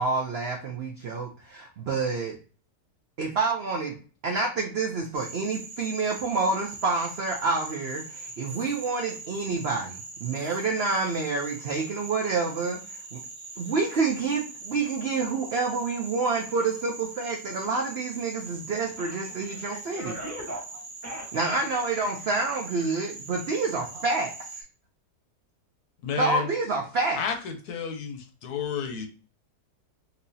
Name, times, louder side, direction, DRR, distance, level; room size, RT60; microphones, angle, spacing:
voice 1, 0.0-2.4 3.2-3.9 4.2-13.2 13.6-20.1 21.3-24.6 26.2-27.2, right 4 dB, 80° right, 2 dB, 0.5 m, -28 dB
Frog, 5.1-24.6, right 3 dB, 50° right, 0.9 m, -42 dB
voice 2, 19.0-21.3 21.7-22.1, equal, 10° right, -2 dB, 1.0 m, -40 dB
voice 3, 26.0-26.5 27.2-29.1, left 7 dB, 70° left, 5 dB, 1.1 m, -31 dB
4.2 x 2.8 x 2.6 m, 0.37 s
omnidirectional pair, 1.8 m